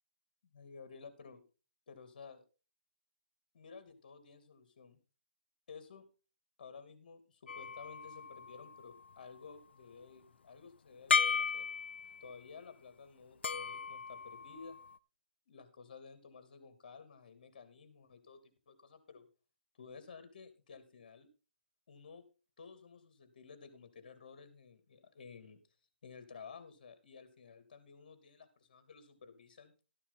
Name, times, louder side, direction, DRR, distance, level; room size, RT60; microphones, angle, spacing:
voice 1, 0.5-1.4 1.9-2.4 3.5-5.0 5.7-6.0 6.6-11.7 12.2-14.8 15.5-19.3 19.8-21.3 21.9-22.2 22.6-25.6 26.0-29.7, left 5 dB, 45° left, 10 dB, 2.8 m, -54 dB
sound 1, 7.5-9.1 11.1-12.4 13.4-15.0, left 6 dB, 70° left, 0.6 m, -35 dB
13.5 x 9.8 x 4.0 m, 0.33 s
hypercardioid pair, 170°, 6 cm